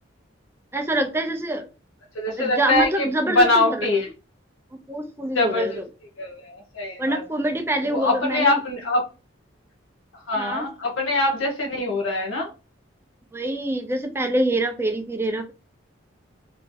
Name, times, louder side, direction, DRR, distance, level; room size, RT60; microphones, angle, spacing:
voice 1, 0.7-1.6 2.4-3.9 4.7-5.8 7.0-8.6 10.4-10.7 13.3-15.5, right 1 dB, 10° right, 0.4 m, -25 dB
voice 2, 2.1-4.1 5.3-5.8 6.2-7.2 7.9-9.1 10.3-12.5, left 2 dB, 80° left, 0.9 m, -23 dB
3.1 x 2.6 x 3.6 m
head